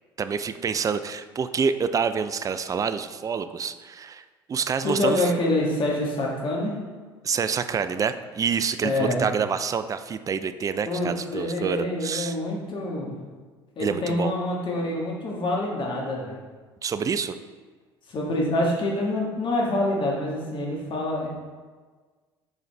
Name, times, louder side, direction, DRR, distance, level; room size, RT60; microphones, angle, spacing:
voice 1, 0.2-4.2 4.5-5.3 7.2-12.4 13.8-14.3 16.8-17.3, right 6 dB, 25° right, 11 dB, 0.4 m, -27 dB
voice 2, 4.8-6.8 8.8-9.2 10.8-13.1 13.7-16.4 18.1-21.3, left 1 dB, 40° left, -2 dB, 1.6 m, -26 dB
7.2 x 3.9 x 3.3 m, 1.4 s
hypercardioid pair, 65°, 13 cm